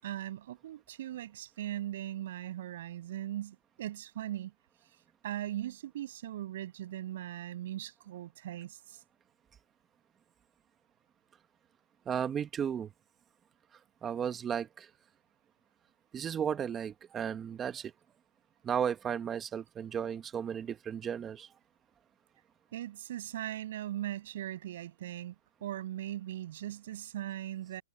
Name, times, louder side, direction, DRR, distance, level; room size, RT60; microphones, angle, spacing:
voice 1, 0.0-4.5 5.2-9.0 22.7-25.3 25.6-27.8, right 12 dB, 50° right, 7.7 m, -39 dB
voice 2, 12.1-12.9 14.0-14.9 16.1-17.9 18.6-21.5, right 8 dB, 15° right, 1.4 m, -34 dB
hypercardioid pair, 160°, 0 cm